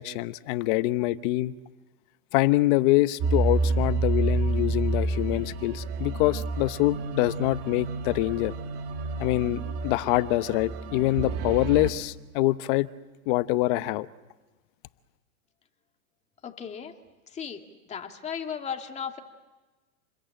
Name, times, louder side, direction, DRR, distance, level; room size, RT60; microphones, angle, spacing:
voice 1, 0.0-1.5 2.3-8.5 9.2-12.9 13.3-14.1, left 18 dB, 40° left, 0.9 m, -25 dB
sound 1, 3.2-11.9, right 3 dB, 35° right, 2.3 m, -29 dB
voice 2, 16.4-16.9 17.3-17.6 17.9-19.2, left 7 dB, 15° left, 2.3 m, -35 dB
29.0 x 22.0 x 8.9 m
supercardioid pair, 145°, 40 cm